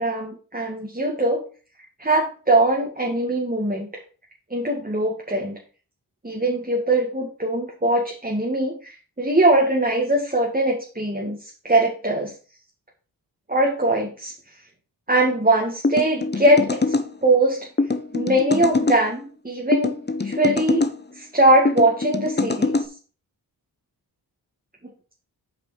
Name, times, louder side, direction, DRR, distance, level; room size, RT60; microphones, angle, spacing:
voice 1, 0.0-1.4 2.0-3.9 4.5-5.6 6.2-12.3 13.5-14.3 15.1-16.9 17.2-17.7 18.1-19.9 20.2-20.9 21.1-22.8, right 1 dB, 20° right, -1 dB, 2.0 m, -21 dB
sound 1, 15.8-17.1 17.8-19.0 19.7-21.0 21.7-22.9, left 3 dB, 25° left, 1.0 m, -23 dB
7.6 x 5.0 x 4.9 m, 0.38 s
cardioid pair, 45°, 42 cm